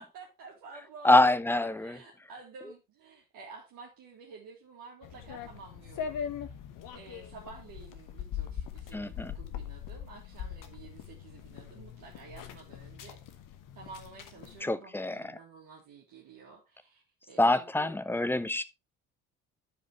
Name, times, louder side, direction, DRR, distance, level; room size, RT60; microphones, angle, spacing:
voice 1, 0.0-1.3 1.6-6.2 6.9-13.2 13.8-17.0 17.3-17.9, right 4 dB, 55° right, 2.2 m, -50 dB
voice 2, 1.0-2.0 8.9-9.3 14.6-15.2 17.4-18.6, left 2 dB, 5° left, 0.6 m, -25 dB
sound 1, 5.0-14.6, left 8 dB, 50° left, 1.1 m, -41 dB
11.0 x 5.0 x 3.0 m
figure-of-eight pair, 55°, 40 cm